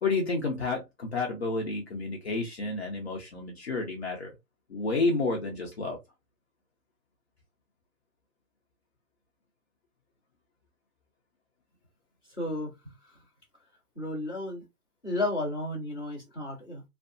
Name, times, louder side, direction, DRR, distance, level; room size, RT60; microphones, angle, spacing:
voice 1, 0.0-4.3 4.7-6.0, left 3 dB, 45° left, 0.6 m, -30 dB
voice 2, 12.3-13.2 13.9-14.6 15.0-16.8, left 2 dB, 10° left, 1.0 m, -33 dB
2.7 x 2.1 x 2.4 m
hypercardioid pair, 165°, 45 cm